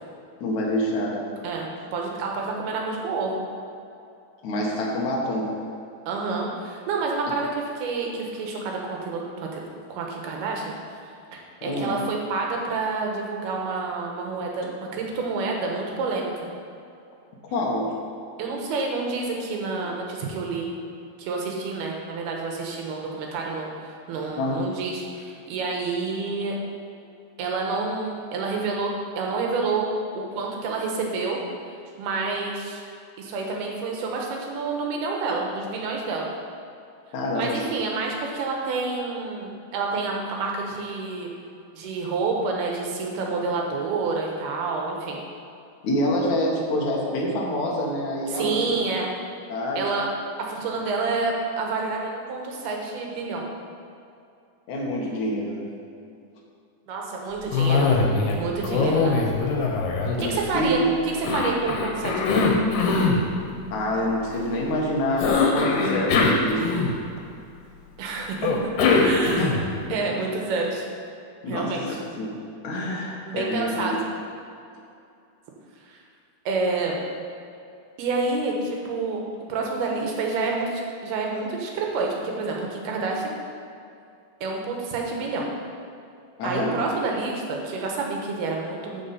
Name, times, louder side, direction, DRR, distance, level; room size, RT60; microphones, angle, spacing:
voice 1, 0.4-1.3 4.4-5.6 11.6-12.0 17.4-18.0 24.4-24.6 37.1-37.7 45.8-48.8 49.5-49.9 54.7-55.8 58.7-58.9 60.2-60.9 63.7-66.7 69.3-69.5 70.1-70.2 71.4-72.3 72.6-73.9 86.4-86.8, left 1 dB, 60° left, -2 dB, 2.5 m, -27 dB
voice 2, 1.4-3.4 6.1-9.6 9.9-10.7 11.3-16.3 18.4-20.7 21.2-26.6 27.4-29.9 30.1-31.4 31.9-32.8 33.2-36.3 37.3-41.3 41.7-45.2 48.3-49.1 49.8-50.1 50.4-53.5 56.9-57.9 58.3-59.1 60.2-60.8 61.3-62.5 68.0-68.5 69.0-69.6 69.9-70.8 71.5-71.9 73.3-73.9 75.9-76.0 76.5-76.9 78.0-79.2 79.5-83.3 84.4-85.5 86.4-89.0, right 4 dB, 85° right, 0 dB, 3.3 m, -28 dB
Cough, 57.5-58.4 58.6-60.7 61.2-63.2 65.2-67.2 68.4-69.7, left 4 dB, 85° left, 3.2 m, -22 dB
14.0 x 4.8 x 5.7 m, 2.5 s
omnidirectional pair, 4.4 m